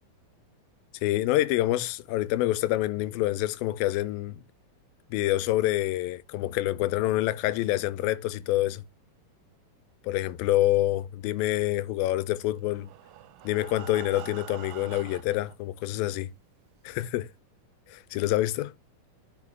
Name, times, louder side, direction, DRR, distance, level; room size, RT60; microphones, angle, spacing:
voice 1, 1.0-4.4 5.1-8.8 10.0-12.9 13.4-16.3 16.8-17.3 17.9-18.7, left 15 dB, 90° left, 2.4 m, -27 dB
Breathing, 12.6-15.6 16.3-16.4 16.8-16.9 17.3-17.4, right 13 dB, 80° right, 2.2 m, -45 dB
9.7 x 4.6 x 3.6 m
omnidirectional pair, 4.1 m